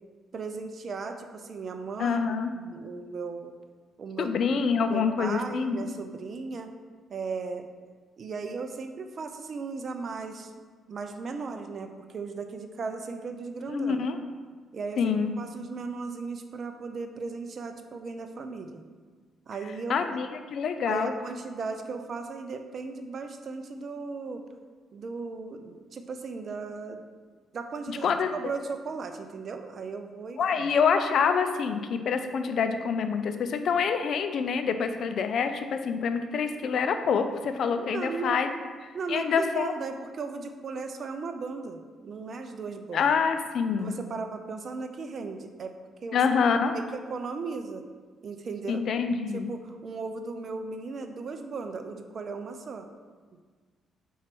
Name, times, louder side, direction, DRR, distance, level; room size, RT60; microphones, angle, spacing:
voice 1, 0.3-3.5 4.0-4.3 4.9-6.7 7.1-7.7 8.2-10.6 10.9-14.0 14.7-18.8 19.5-20.0 20.9-24.4 24.9-27.0 27.5-30.7 37.8-38.5 38.9-43.1 43.8-46.2 46.7-47.9 48.2-48.8 49.3-52.9, right 4 dB, 50° right, 7 dB, 0.6 m, -36 dB
voice 2, 2.0-2.5 4.2-5.8 13.7-14.2 15.0-15.3 19.9-21.1 27.9-28.3 30.4-38.5 39.1-39.7 42.9-43.9 46.1-46.7 48.7-49.5, left 6 dB, 65° left, 8 dB, 0.5 m, -26 dB
4.6 x 4.6 x 6.0 m, 1.5 s
cardioid pair, 90°, 0 cm